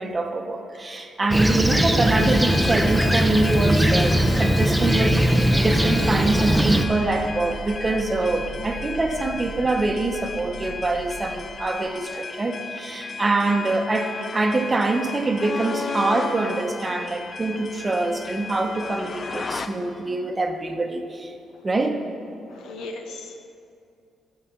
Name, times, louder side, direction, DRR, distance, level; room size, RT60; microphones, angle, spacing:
voice 1, 0.0-21.3 21.6-22.0, right 2 dB, 25° right, 4 dB, 1.0 m, -24 dB
Fixed-wing aircraft airplane, 1.3-6.8, right 1 dB, 5° right, 0.7 m, -20 dB
sound 1, 2.2-19.7, left 4 dB, 40° left, 0.6 m, -35 dB
sound 2, 3.8-12.0, right 3 dB, 70° right, 0.8 m, -39 dB
voice 2, 4.1-4.9 6.2-6.3 6.9-7.3 13.1-13.2 21.5-21.7 22.5-23.5, left 3 dB, 80° left, 4 dB, 1.1 m, -40 dB
14.0 x 5.8 x 5.8 m, 2.5 s
cardioid pair, 90°, 0 cm